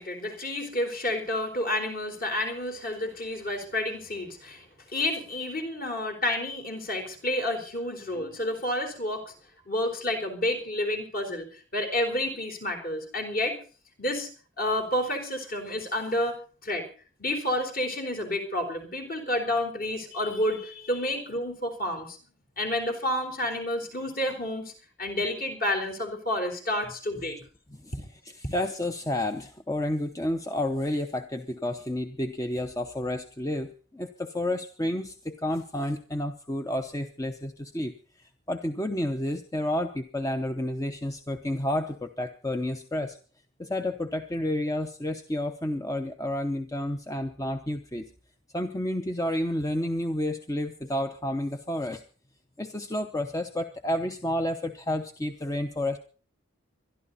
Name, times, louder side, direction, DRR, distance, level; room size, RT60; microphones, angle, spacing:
voice 1, 0.0-9.3 9.7-11.5 11.7-13.6 14.0-14.3 14.6-16.4 16.6-16.9 17.2-22.2 22.6-24.7 25.0-27.4, left 1 dB, 45° left, 4 dB, 4.1 m, -30 dB
voice 2, 28.5-43.2 43.6-48.1 48.5-52.0 52.6-56.0, left 1 dB, 15° left, 7 dB, 0.8 m, -30 dB
22.5 x 12.0 x 4.1 m, 0.40 s
head